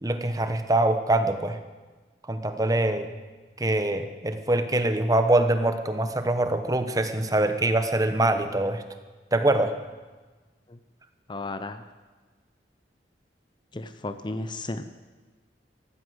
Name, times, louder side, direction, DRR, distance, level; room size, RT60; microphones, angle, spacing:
voice 1, 0.0-1.6 2.3-3.1 3.6-8.8 9.3-9.7, right 2 dB, 20° right, 8 dB, 1.1 m, -24 dB
voice 2, 11.3-11.8 13.7-14.8, left 2 dB, 25° left, 10 dB, 0.6 m, -34 dB
14.0 x 12.5 x 8.0 m, 1.3 s
head